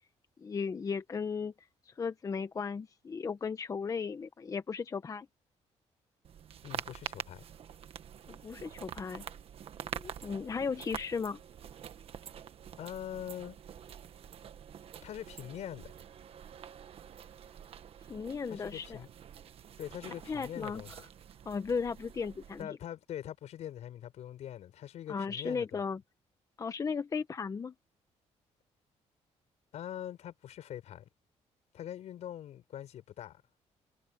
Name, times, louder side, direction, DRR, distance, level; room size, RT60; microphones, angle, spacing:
voice 1, 0.4-1.5 1.9-5.3 8.3-9.2 9.9-11.4 18.1-19.0 20.3-20.8 21.5-22.7 25.1-26.0 26.6-27.7, left 5 dB, 30° left, 0.9 m, -36 dB
sound 1, 6.2-22.6, right 9 dB, 55° right, 1.5 m, -47 dB
voice 2, 6.6-7.4 12.8-13.6 15.0-15.9 18.5-19.1 19.8-20.9 22.6-25.8 29.7-31.1 31.7-33.4, left 11 dB, 70° left, 4.8 m, -43 dB
cardioid pair, 135°, 12 cm